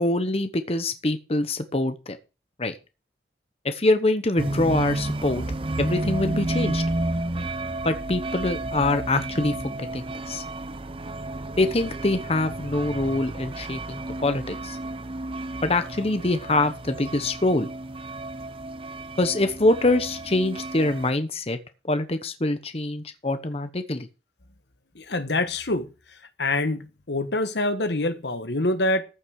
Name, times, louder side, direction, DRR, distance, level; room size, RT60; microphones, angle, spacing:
voice 1, 0.0-2.2 2.6-2.7 3.6-5.4 5.8-6.8 7.8-10.4 11.6-14.8 15.6-17.7 19.2-21.6 21.9-24.1, left 2 dB, 35° left, 1.0 m, -24 dB
sound 1, 4.4-21.1, right 2 dB, 30° right, 0.7 m, -31 dB
voice 2, 24.9-25.9 26.4-29.0, left 2 dB, 70° left, 1.4 m, -25 dB
14.5 x 6.1 x 6.4 m
head